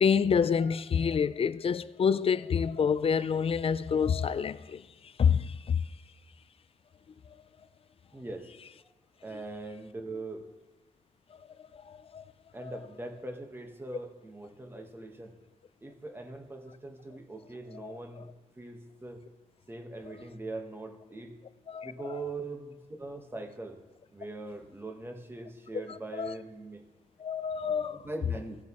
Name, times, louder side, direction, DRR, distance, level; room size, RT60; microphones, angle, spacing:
voice 1, 0.0-4.8 5.2-5.8 11.9-12.2 12.6-12.7 17.8-17.9 21.7-21.9 26.2-26.3 27.2-28.0, left 6 dB, 40° left, 0.4 m, -27 dB
voice 2, 8.1-8.5 9.2-10.4 12.5-15.3 15.8-19.2 19.7-21.4 21.8-23.8 24.1-26.8 27.9-28.6, right 2 dB, 15° right, 1.2 m, -41 dB
16.5 x 7.3 x 3.0 m
cardioid pair, 90°, 14 cm